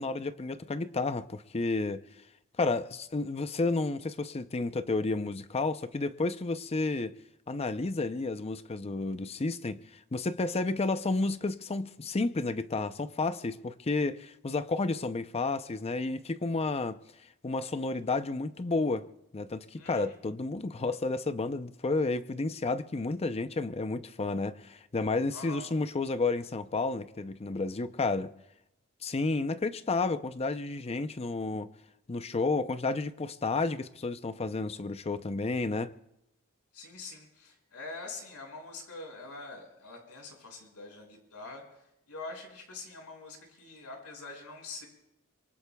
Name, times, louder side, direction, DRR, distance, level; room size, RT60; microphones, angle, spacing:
voice 1, 0.0-2.0 2.6-7.1 7.5-9.8 10.1-17.0 17.4-19.1 19.3-28.3 29.0-31.7 32.1-35.9, left 3 dB, 30° left, 0.6 m, -31 dB
voice 2, 19.8-20.2 25.3-25.7 36.7-44.9, left 3 dB, 90° left, 5.8 m, -45 dB
25.5 x 24.0 x 2.3 m
head